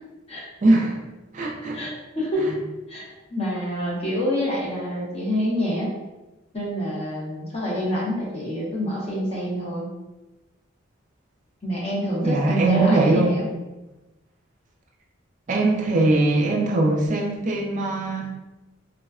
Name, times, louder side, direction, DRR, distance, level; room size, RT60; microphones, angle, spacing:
voice 1, 0.6-1.0 1.3-1.8 12.2-13.4 15.5-18.3, right 2 dB, 35° right, 0 dB, 0.4 m, -21 dB
voice 2, 1.7-2.5 2.9-5.9 6.5-9.9 11.6-13.5, equal, 30° left, -6 dB, 0.6 m, -27 dB
3.4 x 2.1 x 2.3 m, 1.1 s
head